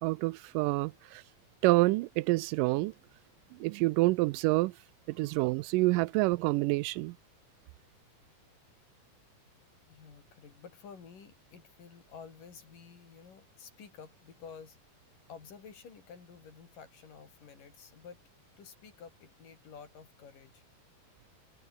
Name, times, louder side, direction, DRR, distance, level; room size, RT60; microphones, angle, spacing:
voice 1, 0.0-1.2 1.6-2.9 3.6-4.7 5.1-7.2, right 21 dB, 85° right, 2.2 m, -27 dB
voice 2, 9.9-14.8 15.3-18.2 18.6-20.6, left 6 dB, 80° left, 5.6 m, -51 dB
omnidirectional pair, 3.8 m